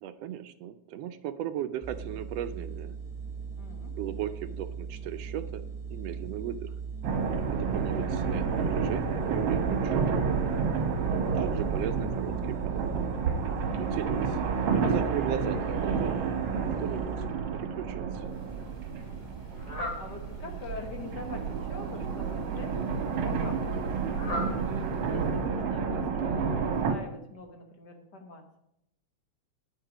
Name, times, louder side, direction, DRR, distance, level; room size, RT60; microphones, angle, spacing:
voice 1, 0.0-3.0 4.0-6.7 7.5-10.2 11.3-13.1 13.8-14.4 14.7-16.1 16.8-17.2 17.5-18.3, right 10 dB, 75° right, 10 dB, 1.5 m, -37 dB
sound 1, 1.8-17.3, right 6 dB, 5° right, 3.5 m, -39 dB
voice 2, 3.5-3.9 19.0-19.4 19.9-24.2 24.6-28.6, left 4 dB, 60° left, 4 dB, 1.1 m, -44 dB
sound 2, 7.0-26.9, right 5 dB, 60° right, 2.1 m, -30 dB
Fowl, 18.2-25.6, left 1 dB, 25° left, 2.3 m, -42 dB
9.8 x 9.0 x 5.0 m, 0.80 s
omnidirectional pair, 3.4 m